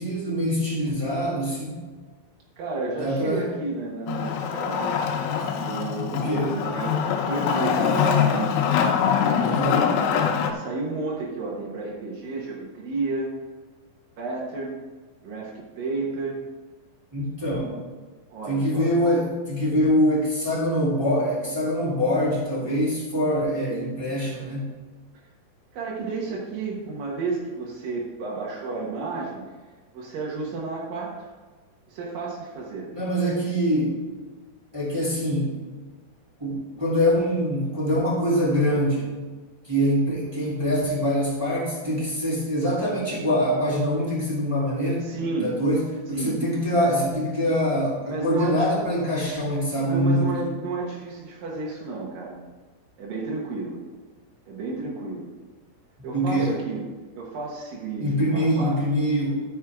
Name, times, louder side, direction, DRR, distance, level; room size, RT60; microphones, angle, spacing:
voice 1, 0.0-1.8 3.0-3.5 6.1-6.6 9.4-9.9 17.1-17.8 18.5-24.7 32.9-34.0 34.7-35.6 36.4-39.1 39.6-45.1 45.4-50.4 56.1-56.6 58.0-59.4, equal, 10° right, -9 dB, 1.5 m, -24 dB
voice 2, 2.6-4.9 5.5-8.6 10.4-13.3 14.2-14.8 15.2-16.4 18.3-19.1 25.7-29.4 29.9-31.1 31.9-32.9 45.0-45.6 46.1-46.4 48.0-48.7 49.8-52.4 53.0-53.8 54.5-55.3 56.0-56.8 57.2-58.8, right 3 dB, 75° right, -4 dB, 2.1 m, -31 dB
Wood, 4.1-10.5, left 7 dB, 80° left, 3.4 m, -23 dB
12.5 x 6.2 x 3.6 m, 1.4 s
omnidirectional pair, 5.9 m